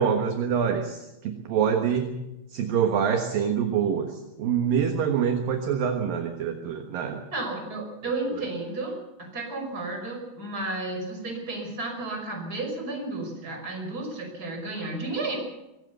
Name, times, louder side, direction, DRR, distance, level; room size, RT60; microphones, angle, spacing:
voice 1, 0.0-2.2 2.5-7.2, right 7 dB, 60° right, 5 dB, 2.6 m, -25 dB
voice 2, 7.3-15.4, right 2 dB, 20° right, 2 dB, 5.7 m, -32 dB
24.0 x 19.5 x 6.8 m, 0.93 s
omnidirectional pair, 5.6 m